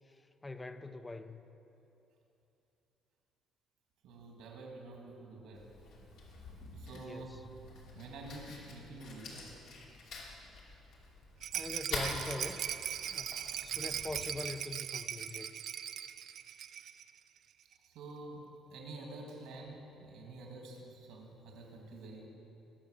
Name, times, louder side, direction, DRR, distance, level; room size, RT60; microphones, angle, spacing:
voice 1, 0.4-1.4 6.9-7.4 11.5-12.6 13.1-13.3 13.6-15.5, left 2 dB, 15° left, 10 dB, 0.7 m, -43 dB
voice 2, 4.0-5.7 6.7-7.4 7.9-9.6 17.8-22.3, right 2 dB, 80° right, 0 dB, 2.5 m, -48 dB
Fire, 5.5-14.3, left 3 dB, 80° left, 3.0 m, -47 dB
Rattle, 11.4-17.1 17.4-17.5 17.7-17.8, right 9 dB, 65° right, 0.5 m, -39 dB
20.5 x 7.1 x 6.6 m, 2.9 s
cardioid pair, 100°, 0 cm